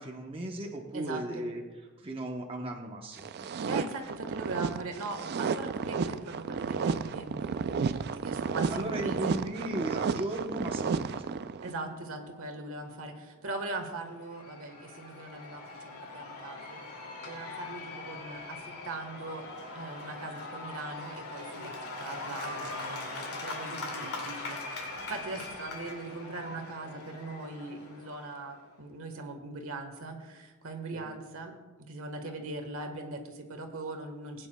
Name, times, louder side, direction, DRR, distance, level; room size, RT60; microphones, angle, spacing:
voice 1, 0.0-1.6 2.0-3.7 8.7-11.3 24.0-24.1 30.9-31.1, right 1 dB, 25° right, 0 dB, 0.9 m, -36 dB
voice 2, 0.9-1.5 3.7-9.3 11.6-16.8 17.2-19.5 19.7-21.7 22.0-31.5 31.8-34.5, right 2 dB, 65° right, 5 dB, 1.4 m, -40 dB
sound 1, 3.2-11.8, right 5 dB, 45° right, 0.3 m, -32 dB
Cheering / Applause / Crowd, 13.9-28.6, left 2 dB, 90° left, 2.4 m, -41 dB
20.0 x 9.6 x 2.2 m, 1.3 s
head